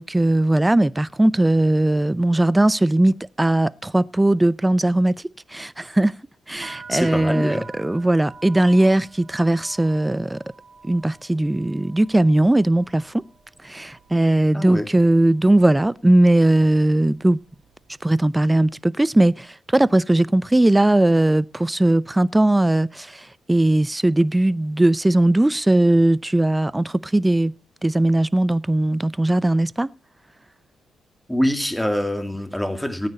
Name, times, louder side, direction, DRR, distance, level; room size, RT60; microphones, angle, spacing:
voice 1, 0.0-5.2 5.5-6.2 6.5-10.4 10.8-13.2 13.6-17.4 18.0-27.5 27.8-29.9, right 1 dB, 10° right, 0.6 m, -19 dB
sound 1, 6.6-14.5 14.8-15.4 16.0-16.3 16.6-18.1, right 4 dB, 55° right, 3.0 m, -46 dB
voice 2, 6.9-7.7 14.5-14.9 31.3-33.1, equal, 5° left, 2.3 m, -24 dB
18.0 x 9.4 x 4.2 m
cardioid pair, 75°, 0 cm